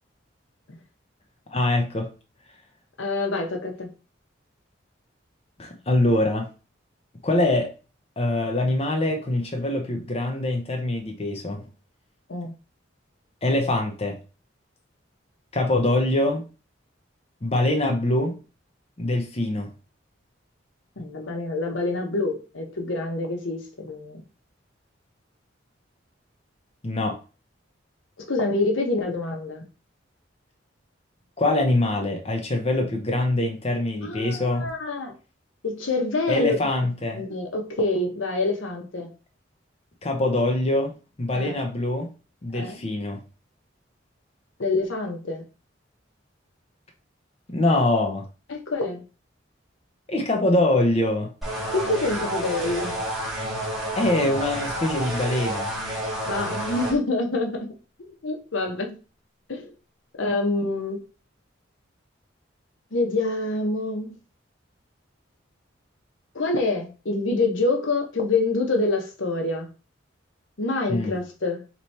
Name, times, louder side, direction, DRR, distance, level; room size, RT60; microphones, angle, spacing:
voice 1, 1.5-2.1 5.6-6.5 7.2-7.7 8.2-11.7 13.4-14.2 15.5-16.5 17.4-18.4 19.0-19.7 26.8-27.2 31.4-34.7 36.3-37.2 40.0-40.9 41.2-42.1 42.4-43.2 47.5-48.3 50.1-51.3 54.0-55.7 70.9-71.1, left 1 dB, 30° left, 0.7 m, -24 dB
voice 2, 3.0-3.9 12.3-12.5 21.0-24.2 28.3-29.6 34.0-35.1 35.6-36.6 37.1-39.1 41.3-41.6 42.5-42.8 44.6-45.4 48.5-49.0 51.7-53.0 56.2-57.7 58.2-59.0 59.5-59.7 60.2-61.0 62.9-64.2 66.3-69.7 70.6-71.6, left 2 dB, 80° left, 0.9 m, -26 dB
sound 1, 51.4-56.9, right 1 dB, ahead, 1.4 m, -30 dB
3.2 x 3.0 x 4.1 m
head